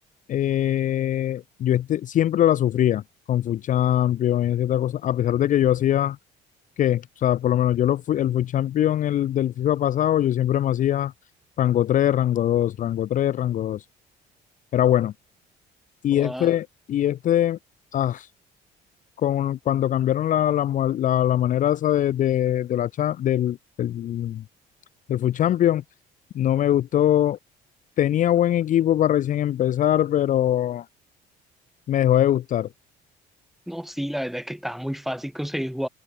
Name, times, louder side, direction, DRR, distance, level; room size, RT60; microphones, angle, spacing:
voice 1, 0.3-3.0 3.3-6.2 6.8-11.1 11.6-13.8 14.7-15.1 16.0-17.6 17.9-18.3 19.2-24.4 25.1-25.8 26.3-27.4 28.0-30.9 31.9-32.7, left 11 dB, 50° left, 0.6 m, -22 dB
voice 2, 16.1-16.5 33.7-35.9, equal, ahead, 2.0 m, -30 dB
cardioid pair, 110°, 17 cm